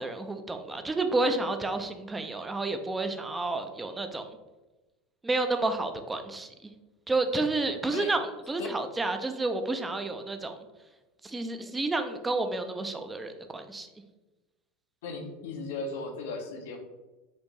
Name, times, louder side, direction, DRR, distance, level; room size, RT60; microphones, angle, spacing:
voice 1, 0.0-4.4 5.2-6.7 7.1-10.6 11.2-13.9, right 2 dB, 15° right, 7 dB, 0.4 m, -30 dB
voice 2, 15.0-16.8, left 3 dB, 70° left, 4 dB, 0.7 m, -36 dB
4.4 x 2.6 x 3.0 m, 1.1 s
hypercardioid pair, 85°, 0 cm